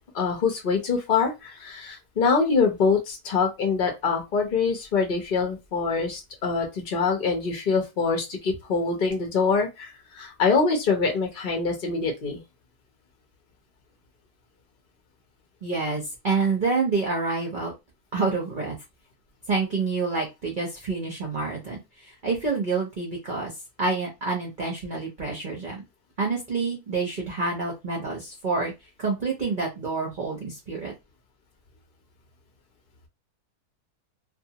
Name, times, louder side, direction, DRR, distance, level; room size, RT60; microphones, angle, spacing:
voice 1, 0.1-12.4, left 5 dB, 45° left, 2 dB, 0.8 m, -24 dB
voice 2, 15.6-17.7 18.1-18.7 19.5-21.8 22.2-23.5 23.8-25.8 26.2-28.7 29.0-30.9, right 4 dB, 40° right, -1 dB, 0.7 m, -27 dB
2.6 x 2.5 x 2.8 m, 0.22 s
omnidirectional pair, 1.6 m